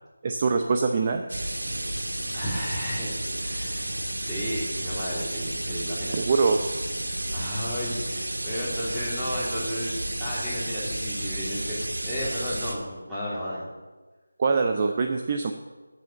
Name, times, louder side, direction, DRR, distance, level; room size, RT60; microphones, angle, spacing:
voice 1, 0.2-1.2 6.1-6.6 14.4-15.5, right 4 dB, 25° right, 4 dB, 0.6 m, -23 dB
sound 1, 1.3-12.7, right 1 dB, 80° right, 2.2 m, -32 dB
voice 2, 2.3-3.1 3.4-4.0 4.2-6.2 7.3-13.7, equal, 5° right, -12 dB, 3.1 m, -33 dB
8.9 x 7.8 x 9.1 m, 1.3 s
figure-of-eight pair, 170°, 0 cm